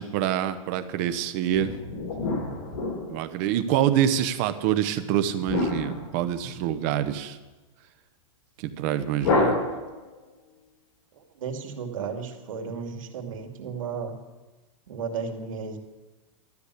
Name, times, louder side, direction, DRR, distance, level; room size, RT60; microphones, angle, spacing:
voice 1, 0.0-1.7 3.1-7.4 8.6-9.7, right 10 dB, 30° right, 11 dB, 0.8 m, -26 dB
sound 1, 1.5-3.6 5.5-6.9 9.2-10.2, left 3 dB, 55° left, 4.0 m, -28 dB
voice 2, 11.1-14.1 14.9-15.8, right 5 dB, 85° right, 3 dB, 2.5 m, -34 dB
13.0 x 8.2 x 8.3 m, 1.2 s
supercardioid pair, 170°, 17 cm